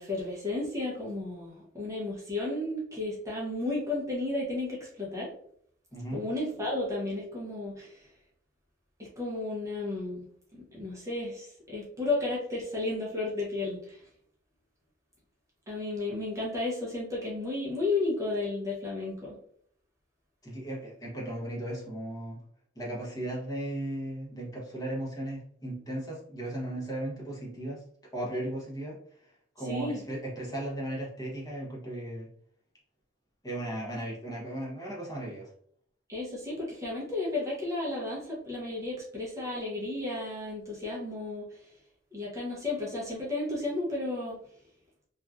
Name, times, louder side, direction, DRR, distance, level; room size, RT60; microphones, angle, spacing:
voice 1, 0.0-5.3 6.1-8.1 9.0-10.2 10.7-14.0 15.7-19.3 29.7-30.0 36.1-41.7 42.1-44.4, left 2 dB, 15° right, -4 dB, 0.6 m, -33 dB
voice 2, 5.9-6.2 20.4-22.4 22.8-27.8 28.1-29.0 29.6-32.3 33.4-35.5, right 1 dB, 20° left, -4 dB, 0.8 m, -36 dB
2.9 x 2.3 x 2.3 m, 0.63 s
head